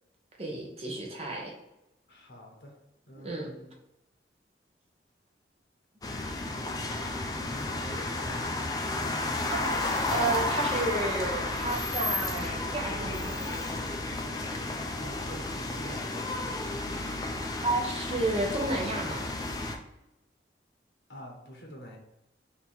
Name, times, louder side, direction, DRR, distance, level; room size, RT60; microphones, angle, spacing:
voice 1, 0.4-1.5 3.2-3.5 9.5-13.4 17.6-19.2, right 2 dB, 35° right, -1 dB, 0.8 m, -31 dB
voice 2, 2.1-2.7 3.1-3.7 7.4-8.4 15.0-16.5 21.1-22.0, equal, 75° left, 0 dB, 1.2 m, -46 dB
sound 1, 6.0-19.8, left 2 dB, 20° left, 0.4 m, -32 dB
3.6 x 2.8 x 4.3 m, 0.91 s
head